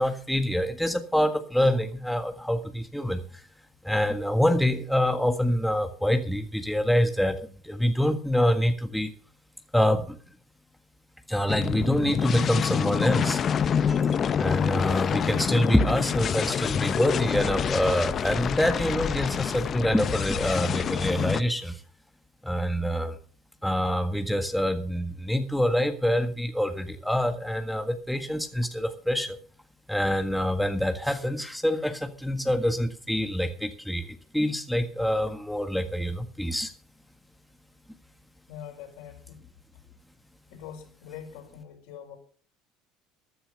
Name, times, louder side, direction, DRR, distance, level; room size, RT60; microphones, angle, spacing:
voice 1, 0.0-3.2 3.8-9.1 9.7-10.2 11.3-13.4 14.4-21.8 22.4-23.1 23.6-29.4 29.9-36.7, equal, ahead, 6 dB, 1.7 m, -26 dB
sound 1, 11.5-21.4, left 8 dB, 40° left, 0.7 m, -27 dB
sound 2, 13.9-17.0, right 3 dB, 15° right, 3.7 m, -49 dB
voice 2, 38.5-39.5 40.5-42.2, left 9 dB, 70° left, 2 dB, 5.2 m, -43 dB
14.5 x 10.0 x 5.4 m, 0.43 s
hypercardioid pair, 75°, 0 cm